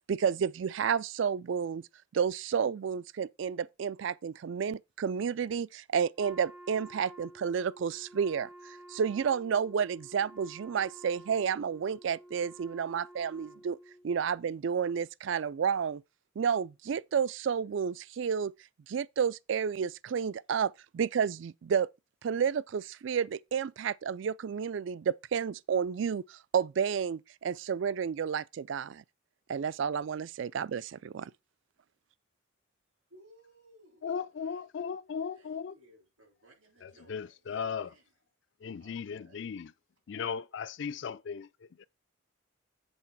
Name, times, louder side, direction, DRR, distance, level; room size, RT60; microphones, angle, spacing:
voice 1, 0.1-1.8 2.1-13.8 14.0-16.0 16.4-18.5 18.9-21.9 22.2-29.0 29.5-31.3, right 7 dB, 65° right, 0.3 m, -31 dB
Wind instrument woodwind instrument, 6.2-14.1, right 1 dB, 5° right, 0.4 m, -52 dB
voice 2, 33.1-34.7 35.3-38.1 38.8-39.4 40.3-40.7, right 1 dB, 90° right, 5.4 m, -61 dB
voice 3, 34.0-35.7 36.8-37.9 38.6-39.7 40.1-41.8, left 6 dB, 60° left, 0.4 m, -37 dB
8.0 x 4.0 x 6.0 m
head